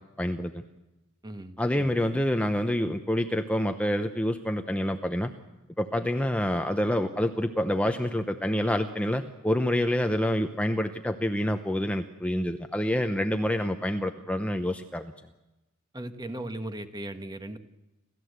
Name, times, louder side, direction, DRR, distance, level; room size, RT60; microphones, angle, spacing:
voice 1, 0.2-0.6 1.6-5.3 5.8-15.1, left 1 dB, 5° left, 6 dB, 0.8 m, -27 dB
voice 2, 1.2-1.9 15.9-17.6, right 1 dB, 20° right, 8 dB, 1.3 m, -37 dB
29.5 x 13.5 x 8.1 m, 0.99 s
head